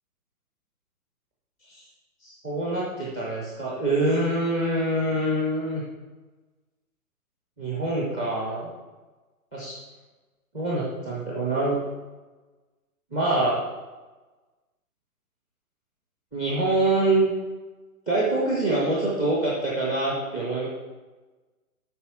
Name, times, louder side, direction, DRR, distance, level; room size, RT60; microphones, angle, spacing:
voice 1, 2.2-5.8 7.6-8.7 9.5-9.7 10.5-11.8 13.1-13.6 16.3-17.3 18.1-20.7, right 2 dB, 5° left, -6 dB, 0.4 m, -25 dB
8.3 x 5.8 x 5.9 m, 1.2 s
hypercardioid pair, 145°, 46 cm